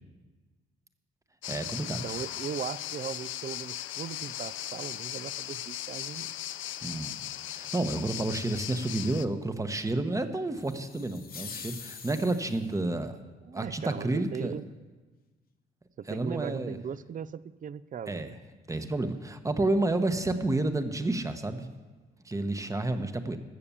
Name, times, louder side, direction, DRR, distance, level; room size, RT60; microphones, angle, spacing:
sound 1, 1.4-9.3, left 13 dB, 75° left, 0.5 m, -38 dB
voice 1, 1.5-2.2 6.8-7.2 7.5-13.2 13.5-14.6 16.1-16.8 18.1-18.3 18.7-21.7 22.2-23.4, right 2 dB, 15° right, 8 dB, 1.0 m, -30 dB
voice 2, 2.0-6.3 13.5-14.6 16.0-18.4, right 8 dB, 40° right, 18 dB, 0.5 m, -38 dB
sound 2, 10.6-12.8, left 6 dB, 50° left, 1.1 m, -44 dB
14.5 x 6.8 x 7.0 m, 1.3 s
cardioid pair, 90°, 20 cm